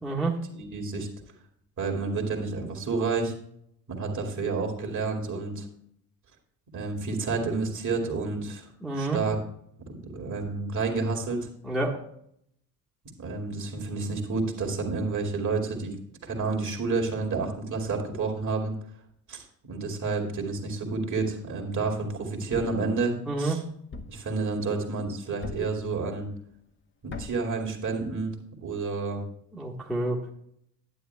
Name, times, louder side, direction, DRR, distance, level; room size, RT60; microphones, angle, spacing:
voice 1, 0.0-0.4 8.8-9.2 11.6-12.0 23.3-23.6 29.5-30.3, right 2 dB, ahead, -3 dB, 1.4 m, -28 dB
voice 2, 0.5-1.1 1.8-3.3 3.9-5.7 6.7-8.7 9.0-9.4 10.0-11.5 13.2-15.9 16.2-18.7 19.3-23.6 24.1-26.3 27.0-28.3 28.6-29.2, right 4 dB, 40° right, 2 dB, 2.4 m, -30 dB
Thump thud, 22.5-22.9 23.9-24.3 25.4-25.8 27.1-27.5, left 4 dB, 25° left, 1.0 m, -40 dB
11.5 x 9.6 x 2.3 m, 0.71 s
figure-of-eight pair, 55°, 47 cm